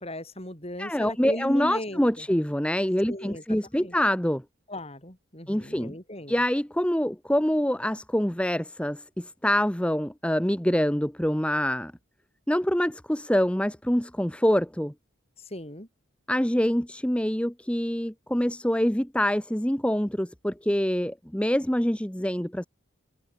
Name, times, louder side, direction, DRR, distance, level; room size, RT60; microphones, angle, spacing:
voice 1, 0.0-2.3 3.1-3.4 3.7-3.9 4.7-6.4 15.4-15.9, left 1 dB, 30° left, 5.6 m, -37 dB
voice 2, 0.8-4.4 5.5-5.9 6.3-11.9 12.5-14.9 16.3-22.7, equal, 5° left, 1.0 m, -25 dB
head